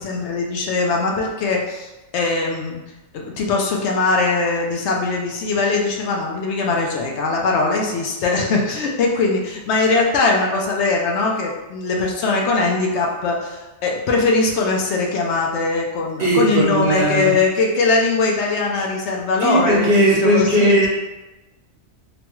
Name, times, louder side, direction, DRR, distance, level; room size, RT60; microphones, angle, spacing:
voice 1, 0.0-2.8 3.1-20.8, left 3 dB, 75° left, -1 dB, 0.8 m, -21 dB
voice 2, 16.2-17.3 19.4-20.9, right 1 dB, 55° right, -5 dB, 1.0 m, -17 dB
3.0 x 2.2 x 2.9 m, 1.1 s
omnidirectional pair, 1.2 m